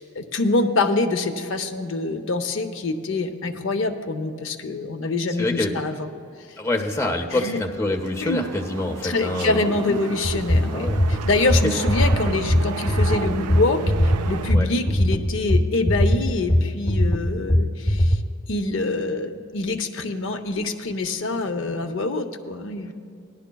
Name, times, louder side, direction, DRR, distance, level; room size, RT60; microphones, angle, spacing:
voice 1, 0.0-6.1 7.3-7.6 8.2-8.4 9.0-18.2 18.5-22.9, left 3 dB, 55° left, 6 dB, 0.6 m, -25 dB
voice 2, 5.4-5.7 6.6-10.0 10.7-11.0 14.5-14.7, left 2 dB, 15° left, 0 dB, 0.6 m, -26 dB
sound 1, 7.8-14.6, right 6 dB, 90° right, 0.4 m, -34 dB
sound 2, 10.2-18.2, equal, 30° left, 0.9 m, -20 dB
18.0 x 11.0 x 2.3 m, 2.5 s
head